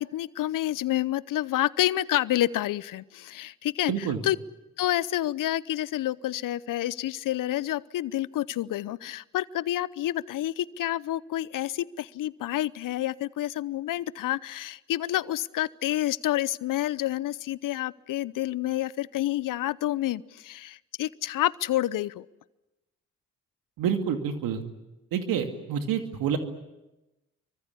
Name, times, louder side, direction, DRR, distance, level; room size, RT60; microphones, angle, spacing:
voice 1, 0.0-4.4 4.8-22.3, left 14 dB, 65° left, 20 dB, 0.8 m, -29 dB
voice 2, 3.9-4.2 23.8-24.6 25.1-26.4, right 8 dB, 75° right, 6 dB, 2.5 m, -28 dB
26.0 x 24.0 x 8.4 m, 1.0 s
hypercardioid pair, 45°, 35 cm